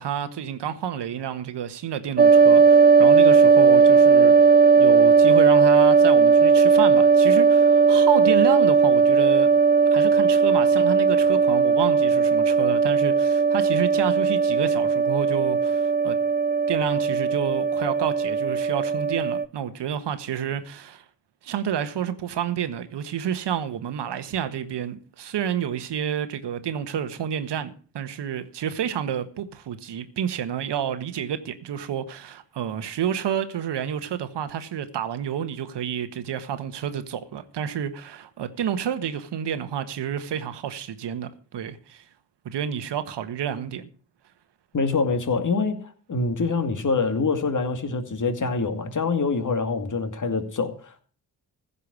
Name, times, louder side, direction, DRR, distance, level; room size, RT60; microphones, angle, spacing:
voice 1, 0.0-4.5 4.8-9.5 9.9-16.2 16.7-21.0 21.4-42.0 42.4-43.9, right 9 dB, 60° right, 1.5 m, -29 dB
sound 1, 2.2-19.5, right 5 dB, 20° right, 0.7 m, -17 dB
voice 2, 44.7-45.8 46.1-51.0, left 4 dB, 40° left, 2.3 m, -25 dB
15.5 x 5.6 x 8.5 m
hypercardioid pair, 40°, 48 cm